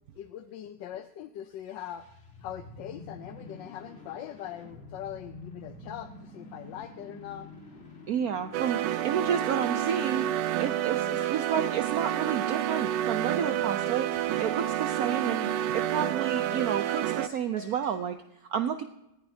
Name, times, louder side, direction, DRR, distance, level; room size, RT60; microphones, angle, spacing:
voice 1, 0.2-2.1 2.4-7.5, left 11 dB, 90° left, 8 dB, 1.4 m, -41 dB
sound 1, 1.5-9.6, left 2 dB, 35° left, 2.0 m, -48 dB
voice 2, 8.1-10.3 10.6-18.2 18.5-18.8, right 8 dB, 65° right, 9 dB, 1.1 m, -31 dB
sound 2, 8.5-17.3, right 12 dB, 80° right, 1.3 m, -29 dB
sound 3, 9.6-18.0, left 1 dB, 5° left, 4.1 m, -49 dB
20.0 x 14.5 x 2.8 m, 0.86 s
omnidirectional pair, 1.9 m